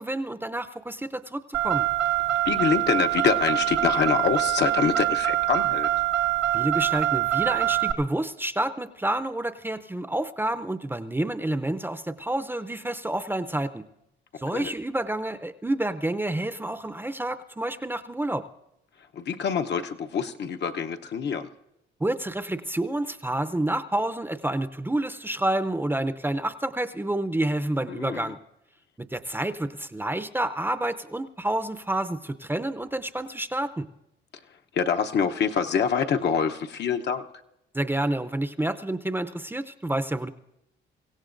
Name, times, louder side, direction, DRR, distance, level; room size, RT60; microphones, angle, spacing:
voice 1, 0.0-1.9 6.5-13.8 14.4-18.4 22.0-28.4 29.0-33.9 37.7-40.3, right 1 dB, 10° right, 10 dB, 0.6 m, -29 dB
Car, 1.5-7.9, right 14 dB, 65° right, 0.8 m, -24 dB
voice 2, 2.5-5.9 14.5-14.7 19.1-21.5 27.9-28.3 34.7-37.3, left 6 dB, 60° left, 6 dB, 0.8 m, -25 dB
24.5 x 16.0 x 2.6 m, 0.84 s
cardioid pair, 90°, 20 cm